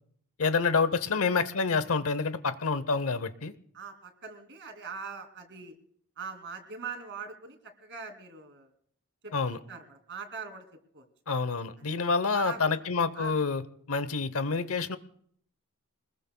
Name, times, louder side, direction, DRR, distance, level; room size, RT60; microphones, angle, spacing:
voice 1, 0.4-3.5 9.3-9.6 11.3-13.6 13.9-15.0, left 4 dB, 70° left, 14 dB, 0.9 m, -28 dB
voice 2, 3.7-5.7 6.2-8.7 9.2-10.7 10.9-11.0 11.9-12.0 12.3-12.8 13.1-13.3, right 5 dB, 55° right, 5 dB, 2.6 m, -42 dB
25.0 x 20.5 x 2.3 m, 0.65 s
head